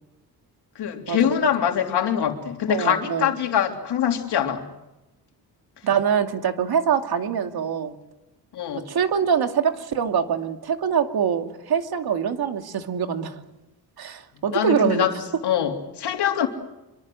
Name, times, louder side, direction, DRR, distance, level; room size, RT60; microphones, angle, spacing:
voice 1, 0.8-4.7 8.5-8.8 14.5-15.2 15.4-16.5, left 9 dB, 85° left, 3 dB, 3.4 m, -23 dB
voice 2, 2.7-3.3 5.8-7.9 8.7-13.4 14.0-15.0, right 7 dB, 70° right, 5 dB, 2.5 m, -24 dB
26.5 x 24.0 x 7.9 m, 0.97 s
cardioid pair, 80°, 39 cm